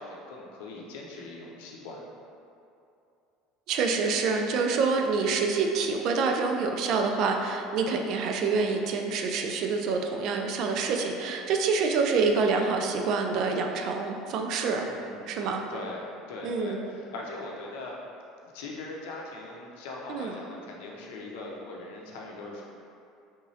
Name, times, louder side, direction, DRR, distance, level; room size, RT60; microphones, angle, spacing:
voice 1, 0.0-2.0 14.9-15.3 15.7-18.0 18.5-22.6, left 2 dB, 85° left, -2 dB, 0.6 m, -40 dB
voice 2, 3.7-14.9 15.3-15.6 16.4-16.8 20.1-20.3, right 4 dB, 50° right, 3 dB, 0.3 m, -27 dB
3.6 x 3.1 x 2.7 m, 2.6 s
cardioid pair, 155°, 0 cm